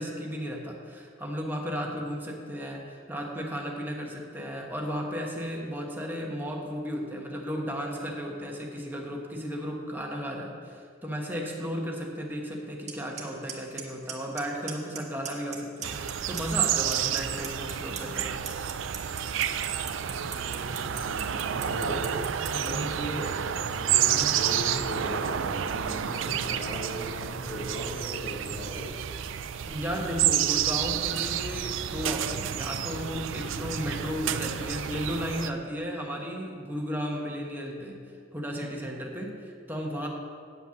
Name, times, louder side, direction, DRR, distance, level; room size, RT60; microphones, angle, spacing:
voice 1, 0.0-18.4 22.5-22.8 29.7-38.0 38.3-40.1, equal, 10° right, -1 dB, 1.3 m, -34 dB
Clock, 12.9-13.0 13.2-13.5 13.8-14.4 14.7-15.0 15.3-16.1 16.4-22.7, right 9 dB, 40° right, 1.4 m, -36 dB
sound 1, 15.8-35.5, right 9 dB, 80° right, 0.4 m, -30 dB
voice 2, 20.1-28.9, equal, 75° left, -6 dB, 2.6 m, -37 dB
9.3 x 5.7 x 7.1 m, 2.3 s
head